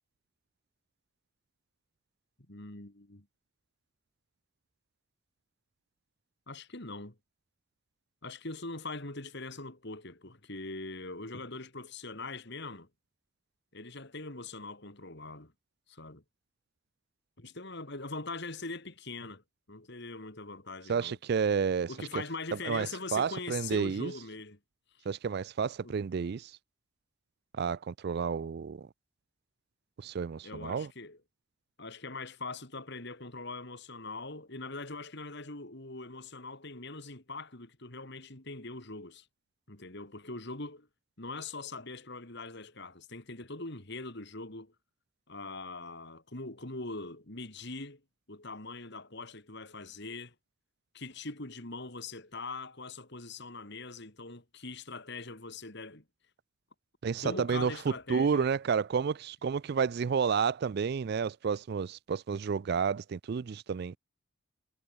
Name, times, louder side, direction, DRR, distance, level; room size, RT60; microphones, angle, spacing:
voice 1, 2.5-3.3 6.5-7.2 8.2-12.9 13.7-15.5 15.9-16.2 17.4-19.4 19.7-21.2 21.9-24.6 25.8-25.9 30.4-31.2 31.8-39.3 39.7-40.9 41.2-44.7 45.3-48.0 48.3-50.3 50.9-56.0 57.0-58.5, left 3 dB, 50° left, 2.9 m, -42 dB
voice 2, 20.9-21.9 22.7-24.1 25.1-26.5 27.6-28.9 30.0-30.9 57.0-57.7 58.1-63.9, right 6 dB, 50° right, 0.3 m, -30 dB
head